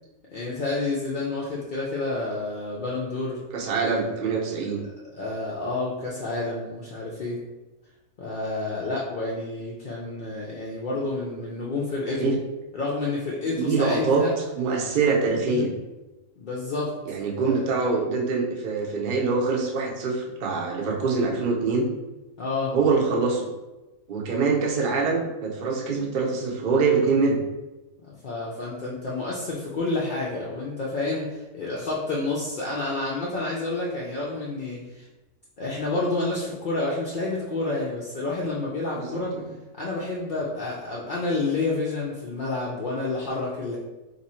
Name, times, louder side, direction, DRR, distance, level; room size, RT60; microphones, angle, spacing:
voice 1, 0.3-3.4 5.1-7.4 8.2-12.4 12.7-14.3 15.4-15.7 16.4-17.0 17.4-17.7 22.4-22.7 28.0-35.1 35.6-39.4 39.8-43.8, left 2 dB, 65° left, -5 dB, 0.5 m, -29 dB
voice 2, 3.5-4.8 12.2-12.4 13.5-14.2 14.6-15.8 17.1-21.9 22.7-23.5 24.1-27.4 38.9-39.5, right 4 dB, 50° right, -2 dB, 0.6 m, -24 dB
2.8 x 2.6 x 4.2 m, 1.1 s
omnidirectional pair, 1.5 m